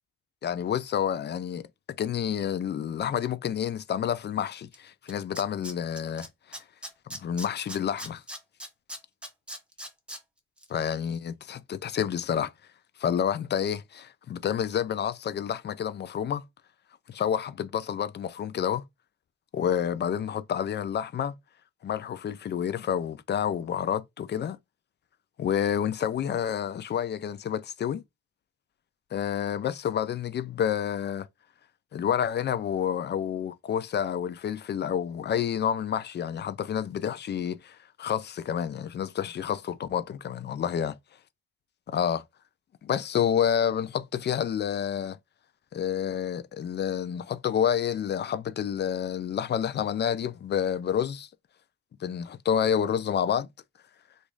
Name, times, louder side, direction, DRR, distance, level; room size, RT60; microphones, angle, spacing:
voice 1, 0.4-1.7 2.0-6.6 7.1-8.2 10.7-12.5 13.0-16.4 17.1-18.8 19.5-21.3 21.8-24.6 25.4-28.0 29.1-31.3 31.9-41.0 41.9-42.2 42.8-45.2 45.7-51.3 52.0-53.5, left 8 dB, 35° left, 0.4 m, -29 dB
Tools, 4.7-4.8 5.1-6.3 6.5-10.2 10.6-10.7, equal, 5° right, 0.7 m, -39 dB
3.0 x 2.5 x 3.8 m
cardioid pair, 90°, 30 cm